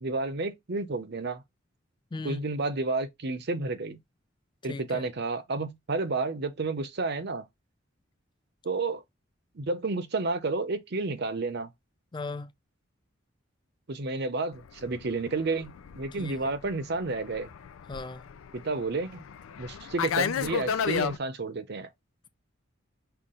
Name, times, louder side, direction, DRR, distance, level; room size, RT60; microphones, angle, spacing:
voice 1, 0.0-1.4 2.2-4.0 4.6-7.4 8.6-9.0 9.6-11.7 13.9-17.5 18.5-19.2 19.6-21.9, right 3 dB, 55° right, 0.7 m, -31 dB
voice 2, 2.1-2.4 4.7-5.0 12.1-12.5 16.2-16.4 17.9-18.2, left 3 dB, 25° left, 0.4 m, -37 dB
Fixed-wing aircraft airplane, 14.7-21.2, left 7 dB, 90° left, 0.4 m, -33 dB
5.7 x 2.4 x 3.7 m
head